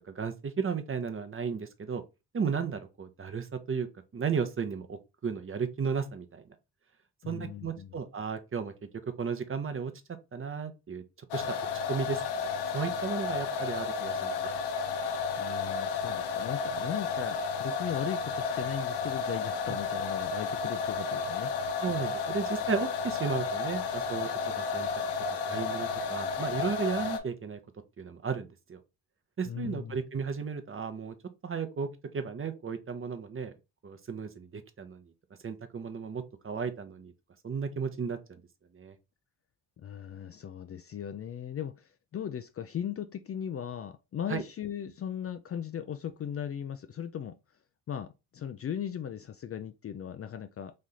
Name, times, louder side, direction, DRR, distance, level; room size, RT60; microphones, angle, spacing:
voice 1, 0.0-2.0 2.3-3.9 4.1-6.4 7.3-8.7 9.2-9.9 10.3-11.0 11.3-11.4 11.9-14.5 21.8-24.9 25.4-27.6 28.0-28.8 29.4-31.2 31.4-31.9 32.1-33.6 33.8-35.0 35.4-37.1 37.4-38.4 38.7-39.0 44.3-44.4, right 6 dB, 30° right, 0.7 m, -34 dB
voice 2, 7.2-7.9 15.3-21.5 29.4-30.0 39.8-47.4 47.9-50.7, left 9 dB, 35° left, 0.4 m, -38 dB
sound 1, 11.3-27.2, left 5 dB, 75° left, 0.8 m, -32 dB
3.2 x 2.7 x 3.9 m
supercardioid pair, 55°, 41 cm